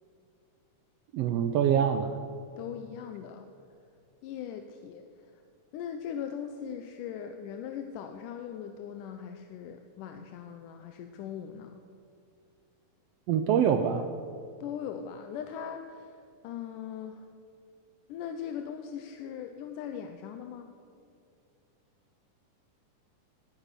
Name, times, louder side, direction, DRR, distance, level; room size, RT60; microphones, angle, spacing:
voice 1, 1.1-2.2 13.3-14.1, right 8 dB, 85° right, 8 dB, 1.4 m, -25 dB
voice 2, 2.6-3.5 4.2-5.1 5.7-11.8 14.6-17.2 18.1-20.7, left 8 dB, 85° left, 7 dB, 2.3 m, -40 dB
20.0 x 9.0 x 6.8 m, 2.4 s
omnidirectional pair, 3.6 m